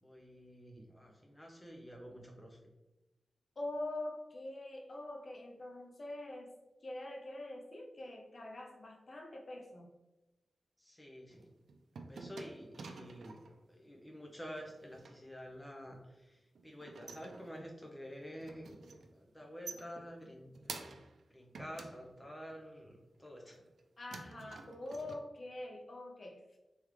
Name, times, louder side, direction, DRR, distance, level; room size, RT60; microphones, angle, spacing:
voice 1, 0.0-2.6 10.8-11.5 12.1-13.4 13.7-18.8 19.1-20.9 21.3-23.6, equal, 10° left, 0 dB, 0.7 m, -49 dB
voice 2, 3.6-6.5 6.8-9.9 24.0-26.4, left 1 dB, 40° left, 0 dB, 0.5 m, -44 dB
sound 1, 11.3-13.6 14.6-15.2 16.6-17.9 18.2-19.1 19.4-21.2 21.5-22.7 23.2-23.8 24.1-25.2, right 4 dB, 80° right, 0.4 m, -50 dB
3.5 x 3.4 x 3.2 m, 1.0 s
wide cardioid pair, 120°, 0 cm